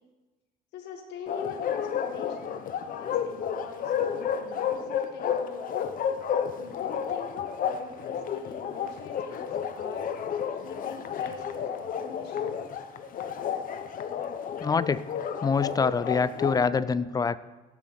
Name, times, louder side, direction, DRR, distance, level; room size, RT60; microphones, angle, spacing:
voice 1, 0.7-5.7 6.6-7.3 7.6-10.1 10.6-12.7, left 6 dB, 85° left, 4 dB, 1.4 m, -44 dB
Bark, 1.3-16.6, left 8 dB, 55° left, 0.8 m, -31 dB
voice 2, 14.6-15.0 15.4-17.4, left 5 dB, 20° left, 17 dB, 0.4 m, -25 dB
17.0 x 7.6 x 4.0 m, 1.1 s
cardioid pair, 110°, 17 cm